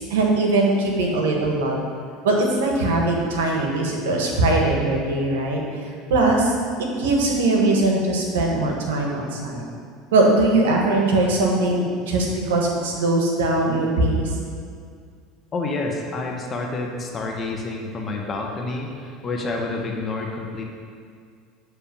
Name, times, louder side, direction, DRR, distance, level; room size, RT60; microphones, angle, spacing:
voice 1, 0.0-1.8 2.2-6.5 6.8-9.6 10.1-14.3, right 2 dB, 90° right, 0 dB, 1.2 m, -21 dB
voice 2, 15.5-20.6, left 3 dB, 35° left, 1 dB, 1.0 m, -28 dB
7.1 x 3.3 x 5.8 m, 2.2 s
supercardioid pair, 95°, 0 cm